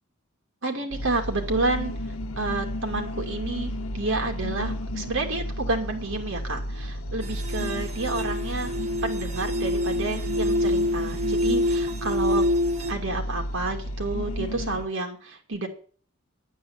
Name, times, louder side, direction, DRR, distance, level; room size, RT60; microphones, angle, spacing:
voice 1, 0.6-1.9 2.4-8.7 9.0-12.5 12.9-15.7, right 2 dB, 65° right, 3 dB, 2.6 m, -30 dB
sound 1, 0.9-14.9, equal, 75° left, 1.1 m, -33 dB
sound 2, 7.2-12.9, left 1 dB, 30° right, 1.4 m, -26 dB
11.0 x 9.3 x 7.3 m, 0.43 s
head